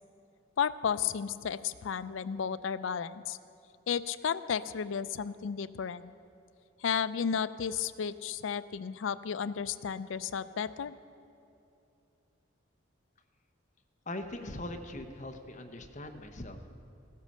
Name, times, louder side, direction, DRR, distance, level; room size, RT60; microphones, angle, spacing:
voice 1, 0.6-3.4 3.9-6.1 6.8-10.9, left 7 dB, 70° left, 15 dB, 0.4 m, -33 dB
voice 2, 14.1-16.7, left 1 dB, 35° left, 6 dB, 0.8 m, -41 dB
15.5 x 8.3 x 6.5 m, 2.7 s
head